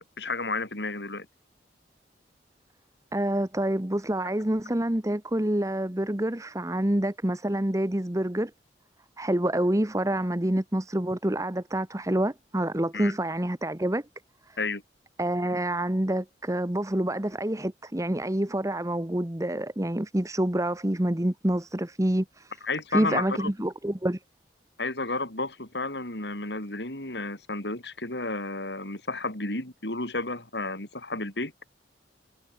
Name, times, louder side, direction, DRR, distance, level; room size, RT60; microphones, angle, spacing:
voice 1, 0.2-1.3 12.9-13.2 14.6-14.8 22.6-23.5 24.8-31.5, left 3 dB, 75° left, 6.1 m, -32 dB
voice 2, 3.1-8.5 9.2-14.0 14.5-14.6 15.2-22.5 22.9-24.2, right 1 dB, 20° right, 1.1 m, -27 dB
head